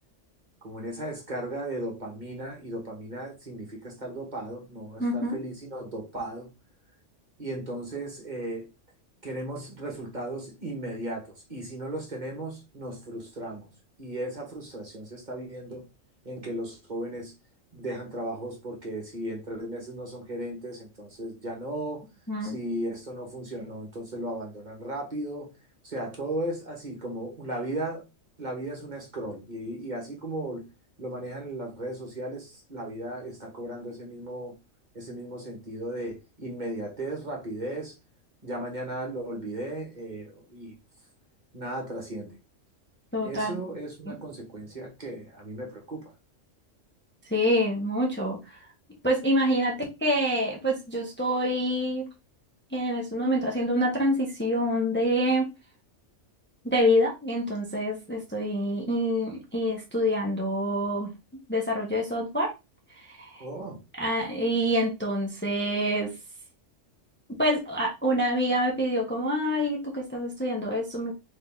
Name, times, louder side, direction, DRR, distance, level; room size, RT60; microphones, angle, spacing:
voice 1, 0.6-6.5 7.4-8.7 9.2-13.7 14.0-15.8 16.2-17.3 17.7-22.0 22.4-25.5 25.8-28.0 28.4-30.6 31.0-34.5 34.9-37.9 38.4-40.8 41.5-42.4 43.2-46.0 63.4-63.8, right 1 dB, 40° right, 1.5 m, -36 dB
voice 2, 5.0-5.4 22.3-22.6 43.1-43.6 44.1-44.2 47.3-48.4 49.0-52.1 52.7-55.5 56.6-61.1 61.5-62.5 63.2-63.4 64.0-66.1 67.3-71.1, equal, 10° left, 1.0 m, -26 dB
3.8 x 3.5 x 3.6 m
omnidirectional pair, 1.3 m